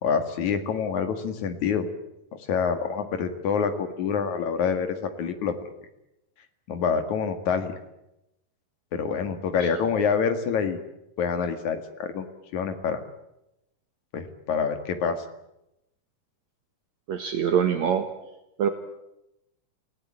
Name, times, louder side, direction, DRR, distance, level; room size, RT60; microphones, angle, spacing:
voice 1, 0.0-1.9 2.5-5.6 6.7-7.8 8.9-10.8 11.2-12.3 12.5-13.0 14.1-15.2, left 6 dB, 60° left, 8 dB, 3.2 m, -26 dB
voice 2, 17.1-18.0 18.6-18.7, right 8 dB, 60° right, 7 dB, 2.4 m, -23 dB
28.5 x 17.0 x 8.9 m, 0.88 s
omnidirectional pair, 3.9 m